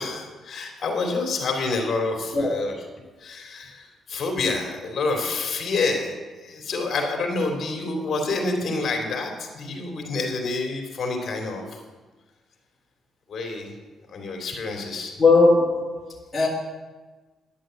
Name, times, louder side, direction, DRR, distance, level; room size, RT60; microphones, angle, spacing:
voice 1, 0.0-2.7 3.2-11.8 13.3-13.7 14.1-15.1, left 3 dB, 40° left, 2 dB, 3.0 m, -28 dB
voice 2, 2.3-2.7 15.2-16.5, left 3 dB, 10° left, -6 dB, 2.2 m, -19 dB
12.0 x 10.5 x 7.6 m, 1.3 s
cardioid pair, 170°, 0 cm